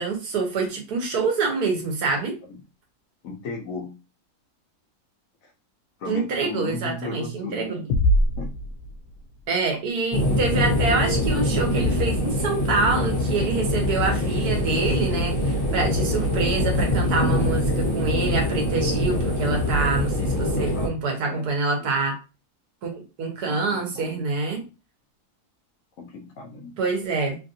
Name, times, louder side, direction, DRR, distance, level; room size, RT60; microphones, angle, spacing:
voice 1, 0.0-2.4 6.1-7.8 9.5-22.1 22.8-24.6 26.8-27.4, right 4 dB, 75° right, 2 dB, 1.4 m, -26 dB
voice 2, 3.2-4.0 5.4-5.5 6.0-7.7 8.4-8.5 20.5-21.0 21.3-21.5 21.8-21.9 23.5-24.2 24.5-24.7 26.0-26.7, left 4 dB, 65° left, 2 dB, 0.9 m, -36 dB
sound 1, 7.9-9.6, equal, 85° left, 1.2 m, -23 dB
sound 2, 10.1-20.9, left 1 dB, 35° left, 1.2 m, -24 dB
3.2 x 2.5 x 2.6 m, 0.30 s
omnidirectional pair, 1.7 m